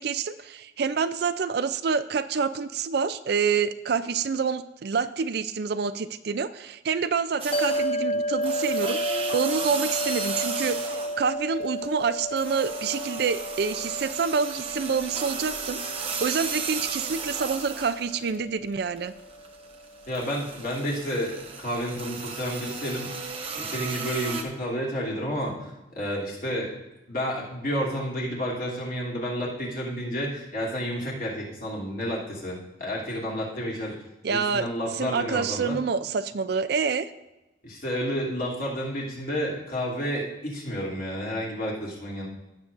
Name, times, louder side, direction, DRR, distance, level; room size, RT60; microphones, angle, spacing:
voice 1, 0.0-19.1 34.2-34.7 34.9-37.1, right 5 dB, 55° right, 12 dB, 0.4 m, -27 dB
sound 1, 7.4-8.0 8.4-11.3 11.6-18.4 18.7-24.4, right 4 dB, 30° right, 0.9 m, -35 dB
sound 2, 7.5-20.0, equal, 30° left, 0.5 m, -32 dB
voice 2, 20.1-23.2 23.5-26.7 27.1-33.9 34.3-35.8 37.6-42.3, equal, 45° left, -5 dB, 2.8 m, -30 dB
16.5 x 6.8 x 2.5 m, 1.0 s
head